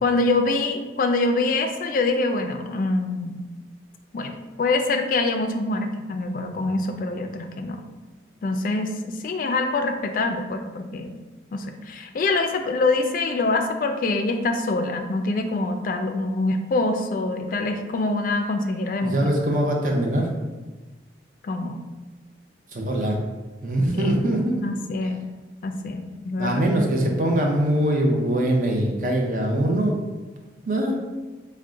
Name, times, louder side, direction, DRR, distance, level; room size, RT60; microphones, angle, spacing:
voice 1, 0.0-3.4 4.1-7.8 8.4-11.1 11.5-19.3 21.4-21.8 23.9-24.1 24.6-25.2 25.6-26.6, left 3 dB, 50° left, 6 dB, 0.3 m, -25 dB
voice 2, 19.0-20.3 22.7-23.2 23.6-24.6 26.4-30.0 30.6-31.0, right 1 dB, 45° right, 1 dB, 0.5 m, -22 dB
3.6 x 2.1 x 3.7 m, 1.2 s
head